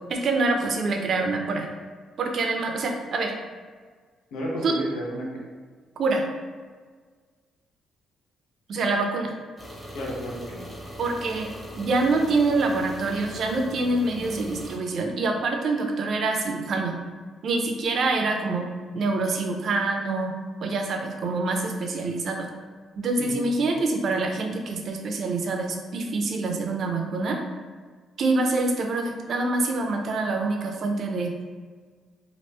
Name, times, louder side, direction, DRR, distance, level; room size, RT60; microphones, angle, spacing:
voice 1, 0.1-1.7 2.2-3.3 4.6-4.8 6.0-6.2 8.7-9.3 11.0-17.0 17.4-18.7 18.9-20.3 20.6-22.5 23.0-27.4 28.2-31.3, right 3 dB, 60° right, 3 dB, 0.5 m, -26 dB
voice 2, 4.3-5.4 9.9-10.7 23.2-23.4, equal, 90° left, -3 dB, 0.9 m, -32 dB
sound 1, 9.6-14.8, equal, 10° left, 0.9 m, -40 dB
3.0 x 2.5 x 3.2 m, 1.5 s
cardioid pair, 90°, 0 cm